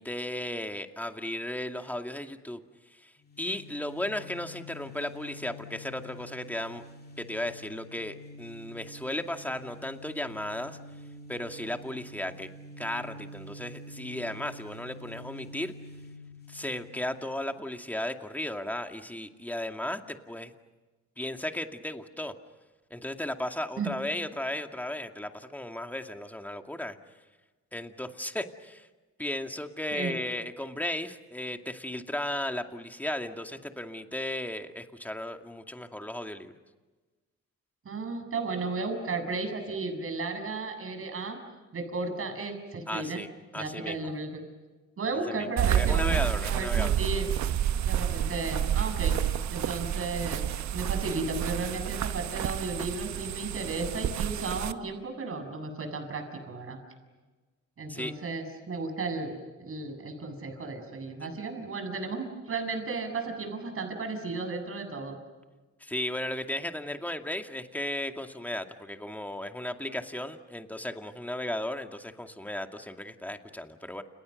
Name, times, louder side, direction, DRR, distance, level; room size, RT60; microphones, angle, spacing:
voice 1, 0.0-2.6 2.9-3.1 3.4-6.8 7.2-10.8 11.3-12.5 12.8-15.7 16.5-20.5 21.2-22.3 22.9-27.0 27.7-28.9 29.2-36.5 42.9-43.3 43.5-44.1 45.3-45.5 45.7-47.0 57.9-58.1 65.8-74.0, left 1 dB, 5° left, 5 dB, 2.4 m, -35 dB
sound 1, 3.2-17.7, left 1 dB, 30° left, 2.6 m, -47 dB
voice 2, 37.8-41.4 41.7-43.2 43.6-44.5 45.0-46.2 46.5-47.3 47.8-49.1 49.5-56.8 57.8-65.2, right 3 dB, 45° right, 6 dB, 7.5 m, -34 dB
sound 2, 45.6-54.7, right 10 dB, 65° right, 1.1 m, -29 dB
30.0 x 30.0 x 6.6 m, 1.2 s
cardioid pair, 90°, 30 cm